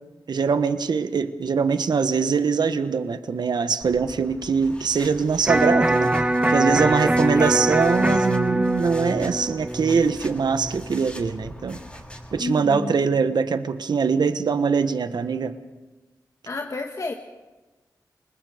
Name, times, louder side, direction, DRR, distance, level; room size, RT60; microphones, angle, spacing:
voice 1, 0.3-6.1 6.5-11.8 12.3-15.5, right 5 dB, 75° right, 10 dB, 1.3 m, -22 dB
sound 1, 3.8-12.4, left 1 dB, 15° left, 6.3 m, -43 dB
Electric guitar, 5.5-11.5, right 1 dB, 15° right, 1.5 m, -23 dB
voice 2, 7.0-7.8 12.4-13.1 16.4-17.1, left 3 dB, 45° left, 3 dB, 1.6 m, -31 dB
29.5 x 20.5 x 5.1 m, 1.2 s
cardioid pair, 55°, 7 cm